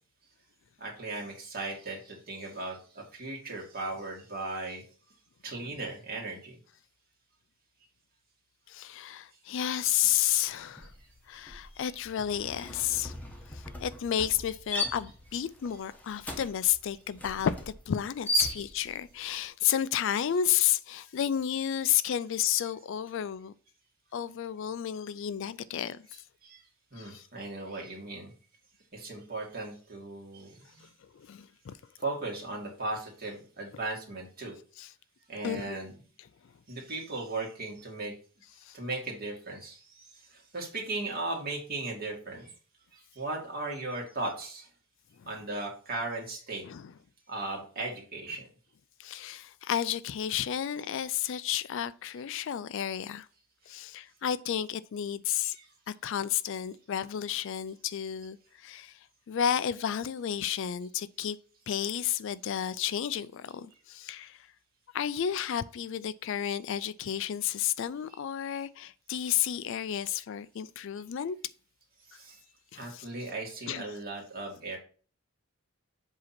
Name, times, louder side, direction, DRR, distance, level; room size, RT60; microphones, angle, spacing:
voice 1, 0.8-4.8 5.4-6.6 11.8-12.0 26.1-26.6 26.9-28.3 28.9-30.9 32.0-34.5 35.3-36.0 36.7-38.1 38.7-42.5 42.9-44.7 45.3-46.6 47.3-48.4 55.4-55.7 68.1-68.2 72.1-72.4 72.8-74.8, right 2 dB, 45° right, 2.1 m, -37 dB
voice 2, 8.7-10.9 11.3-13.2 13.5-23.5 24.1-26.0 27.0-27.3 31.1-31.8 34.8-34.9 35.4-35.8 38.6-38.8 45.2-45.3 46.6-46.9 49.0-53.3 53.7-55.6 55.9-59.0 59.3-61.4 61.7-64.5 64.9-71.4 72.7-73.0 73.7-73.8, left 10 dB, 60° left, 0.3 m, -31 dB
sound 1, 10.0-10.3 10.6-19.1, left 1 dB, 5° left, 0.9 m, -37 dB
7.6 x 2.8 x 5.8 m
head